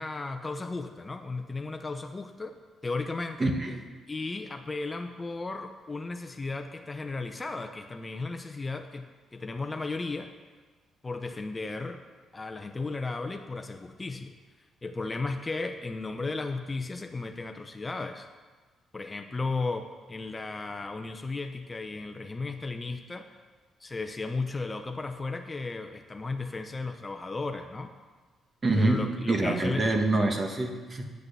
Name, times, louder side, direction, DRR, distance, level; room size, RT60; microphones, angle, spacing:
voice 1, 0.0-2.6 2.8-3.5 4.1-9.1 9.3-10.3 11.0-12.0 12.3-14.3 14.8-18.3 18.9-23.3 23.8-27.9 28.8-29.9, left 3 dB, 25° left, 6 dB, 0.8 m, -35 dB
voice 2, 3.4-3.8 28.6-31.0, right 2 dB, 35° right, 3 dB, 1.7 m, -26 dB
11.0 x 6.5 x 8.4 m, 1.4 s
cardioid pair, 90°, 0 cm